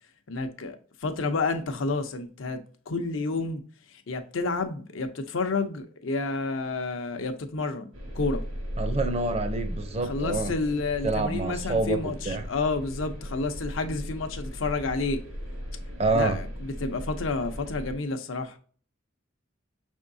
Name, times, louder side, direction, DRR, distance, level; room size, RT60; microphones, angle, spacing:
voice 1, 0.3-3.6 3.9-7.9 8.1-8.4 10.0-15.2 16.1-18.6, left 3 dB, 80° left, 0.6 m, -30 dB
sound 1, 7.9-18.0, equal, 85° right, 1.8 m, -36 dB
voice 2, 8.8-10.5 11.0-12.4 16.0-16.4, right 3 dB, 30° right, 0.5 m, -27 dB
5.4 x 3.5 x 2.6 m
head